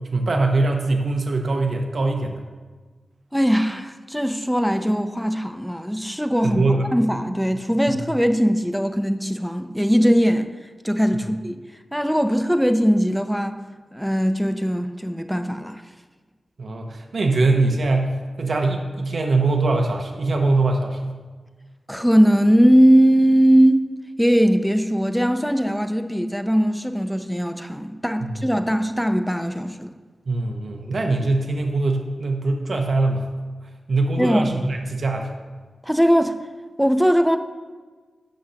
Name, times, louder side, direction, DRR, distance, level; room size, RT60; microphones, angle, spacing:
voice 1, 0.1-2.4 6.4-6.9 7.9-8.1 11.1-11.3 16.6-21.1 28.2-28.4 30.3-33.3 33.9-35.3, right 2 dB, 60° right, 0.8 m, -22 dB
voice 2, 3.3-6.6 6.9-10.5 10.8-11.6 11.9-13.6 13.9-15.8 21.9-23.9 24.2-29.9 34.2-34.5 35.8-36.4 36.8-37.4, equal, ahead, 0.4 m, -20 dB
11.5 x 6.3 x 2.8 m
wide cardioid pair, 105°, 0 cm